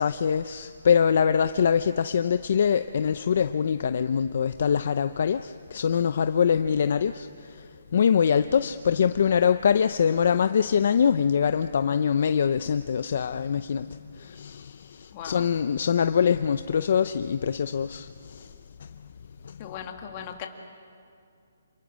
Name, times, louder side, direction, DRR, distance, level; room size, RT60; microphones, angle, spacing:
voice 1, 0.0-18.5 18.8-18.9 19.4-19.7, left 7 dB, 45° left, 10 dB, 0.6 m, -24 dB
voice 2, 15.1-15.5 19.6-20.5, left 9 dB, 25° left, 3 dB, 2.0 m, -38 dB
28.5 x 27.5 x 6.4 m, 2.5 s
hypercardioid pair, 170°, 0 cm